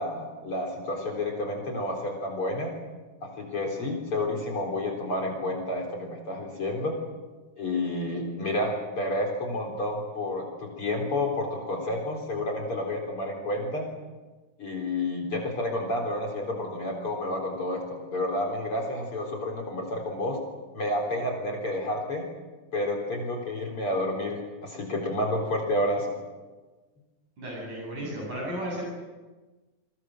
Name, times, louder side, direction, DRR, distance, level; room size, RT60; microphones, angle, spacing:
voice 1, 0.0-2.7 3.2-6.9 7.6-13.9 14.6-20.4 20.7-22.3 22.7-26.1, left 1 dB, 40° left, 0 dB, 4.6 m, -30 dB
voice 2, 27.4-28.9, right 1 dB, 65° right, -3 dB, 9.5 m, -34 dB
29.0 x 24.0 x 6.5 m, 1.3 s
omnidirectional pair, 3.7 m